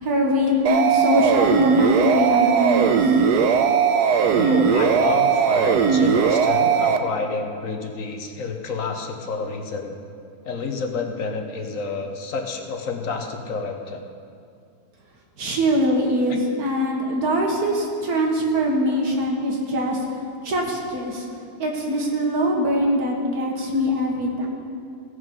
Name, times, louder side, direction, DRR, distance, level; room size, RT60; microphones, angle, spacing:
voice 1, 0.0-3.2 15.4-20.0 20.4-21.3 21.6-24.5, equal, 70° right, 0 dB, 1.8 m, -22 dB
sound 1, 0.7-7.0, right 6 dB, 85° right, 1.2 m, -18 dB
voice 2, 4.3-10.0 10.4-14.0, left 4 dB, 60° left, 3 dB, 1.2 m, -29 dB
16.0 x 6.5 x 5.3 m, 2.3 s
omnidirectional pair, 1.7 m